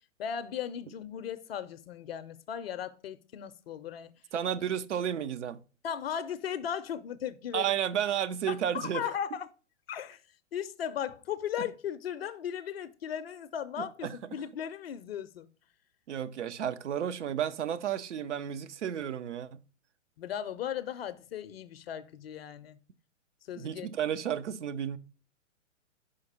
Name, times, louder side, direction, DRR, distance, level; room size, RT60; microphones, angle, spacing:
voice 1, 0.2-4.1 5.8-7.7 8.5-9.5 9.9-10.2 10.5-15.5 20.2-22.8 23.5-23.9, left 9 dB, 55° left, 0.5 m, -37 dB
voice 2, 4.3-5.6 7.5-9.0 11.6-11.7 13.8-14.2 16.1-19.6 23.6-25.0, right 9 dB, 70° right, 0.6 m, -32 dB
5.1 x 4.8 x 4.0 m
figure-of-eight pair, 115°, 37 cm